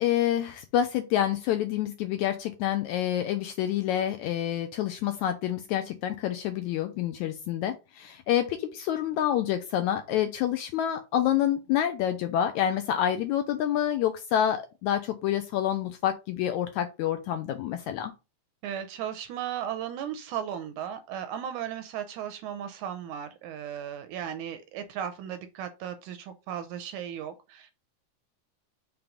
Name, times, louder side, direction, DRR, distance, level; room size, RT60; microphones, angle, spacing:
voice 1, 0.0-18.1, left 11 dB, 80° left, 1.7 m, -28 dB
voice 2, 18.6-27.7, right 9 dB, 80° right, 1.8 m, -36 dB
5.9 x 3.7 x 5.1 m
omnidirectional pair, 3.8 m